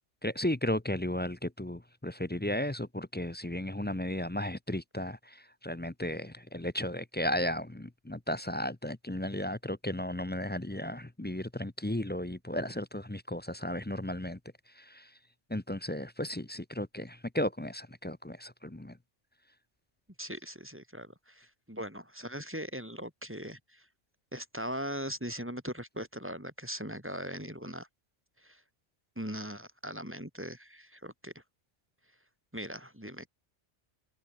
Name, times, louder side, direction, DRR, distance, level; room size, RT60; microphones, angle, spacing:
voice 1, 0.2-14.4 14.7-15.1 15.5-19.0, left 1 dB, 10° left, 0.7 m, -34 dB
voice 2, 20.2-23.9 24.3-27.9 28.4-28.6 29.2-31.4 32.5-33.3, equal, 10° right, 3.6 m, -40 dB
omnidirectional pair, 1.2 m